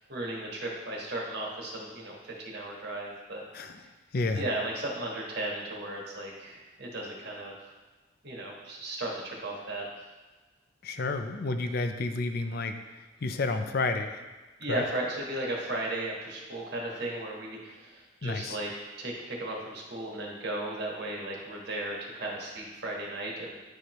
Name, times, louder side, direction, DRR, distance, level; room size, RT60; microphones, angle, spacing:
voice 1, 0.0-3.4 3.8-3.9 4.3-7.5 8.2-9.9 14.6-18.7 19.0-23.5, right 1 dB, 55° right, -2 dB, 1.3 m, -35 dB
voice 2, 4.1-4.5 10.8-12.8 13.2-14.2 14.7-14.8 18.2-18.6, left 3 dB, 50° left, 8 dB, 0.5 m, -30 dB
10.0 x 4.8 x 3.0 m, 1.2 s
head